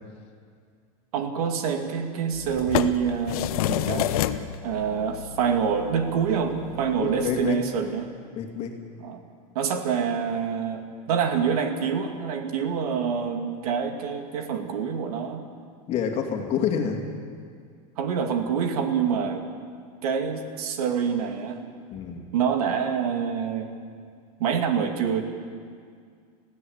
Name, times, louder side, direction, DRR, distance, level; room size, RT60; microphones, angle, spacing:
voice 1, 1.1-4.1 4.6-8.1 9.0-9.2 9.5-15.4 18.0-19.4 20.0-21.6 22.3-23.7 24.4-25.2, right 7 dB, 85° right, 5 dB, 2.5 m, -26 dB
sound 1, 2.3-7.5, left 11 dB, 75° left, 1.0 m, -30 dB
voice 2, 7.0-7.6 8.3-8.8 15.9-17.0 21.9-22.3, left 7 dB, 35° left, 2 dB, 2.5 m, -27 dB
21.0 x 15.5 x 8.1 m, 2.1 s
supercardioid pair, 155°, 19 cm